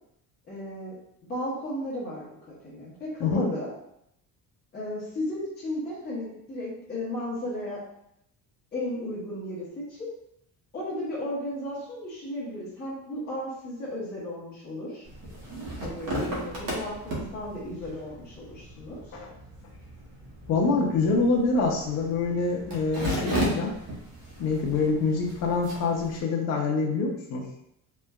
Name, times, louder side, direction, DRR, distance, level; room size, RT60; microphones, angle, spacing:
voice 1, 0.5-1.0 1.3-2.3 2.6-3.7 4.7-7.8 8.7-10.1 10.7-15.0 15.8-19.0, left 1 dB, 25° left, -7 dB, 0.9 m, -34 dB
sound 1, 15.1-26.2, right 1 dB, 65° right, 0.9 m, -36 dB
voice 2, 20.5-23.7 24.4-27.5, left 3 dB, 50° left, -1 dB, 0.5 m, -25 dB
3.1 x 2.1 x 2.3 m, 0.76 s
cardioid pair, 180°, 35 cm